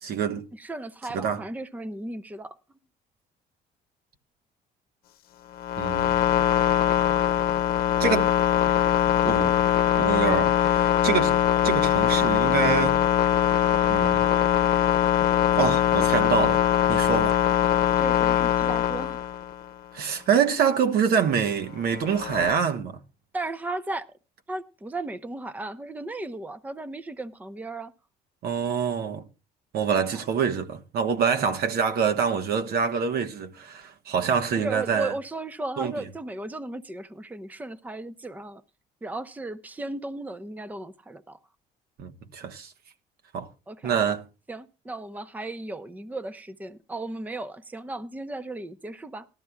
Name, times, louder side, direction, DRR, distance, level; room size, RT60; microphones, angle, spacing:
voice 1, 0.0-0.5 1.1-1.4 5.8-6.2 8.0-8.3 9.2-9.6 10.0-11.4 11.6-13.0 13.9-14.2 15.6-16.6 16.9-17.4 19.9-23.0 28.4-29.2 29.7-35.1 35.8-36.0 42.0-42.7 43.3-43.5 43.8-44.2, right 7 dB, 65° right, 1.2 m, -25 dB
voice 2, 0.5-2.6 18.0-19.2 23.3-24.1 24.5-27.9 31.5-31.6 34.5-38.6 39.0-41.4 43.7-44.0 44.5-49.3, right 2 dB, 10° right, 0.7 m, -35 dB
sound 1, 5.5-19.7 21.9-22.5, left 10 dB, 65° left, 0.9 m, -22 dB
18.0 x 13.0 x 2.3 m
cardioid pair, 110°, 17 cm